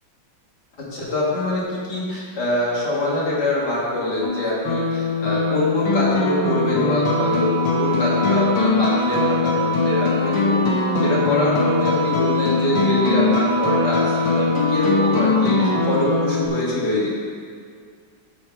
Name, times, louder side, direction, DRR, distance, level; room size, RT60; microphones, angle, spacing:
voice 1, 0.8-17.1, left 1 dB, 50° left, -6 dB, 2.5 m, -24 dB
sound 1, 4.2-16.5, left 3 dB, 90° left, 2.2 m, -21 dB
13.0 x 4.9 x 4.7 m, 2.1 s
omnidirectional pair, 2.3 m